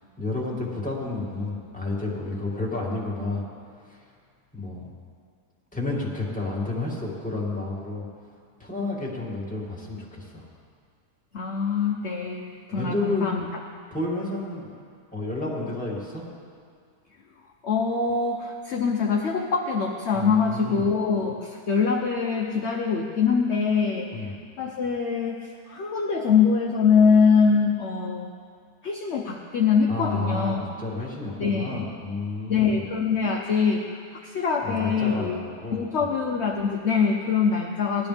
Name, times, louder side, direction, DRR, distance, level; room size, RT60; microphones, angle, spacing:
voice 1, 0.0-3.4 3.8-4.0 4.5-4.9 5.7-8.0 8.6-10.5 12.7-13.3 13.9-14.8 15.1-16.3 20.1-20.8 24.1-24.4 29.9-32.9 34.6-36.1, left 2 dB, 5° left, -5 dB, 2.3 m, -31 dB
voice 2, 11.3-13.5 17.6-24.3 24.6-25.4 25.7-28.3 28.8-30.6 31.4-31.9 32.5-35.4 35.7-38.1, left 5 dB, 50° left, 0 dB, 1.0 m, -23 dB
18.5 x 12.5 x 3.5 m, 2.1 s
omnidirectional pair, 1.8 m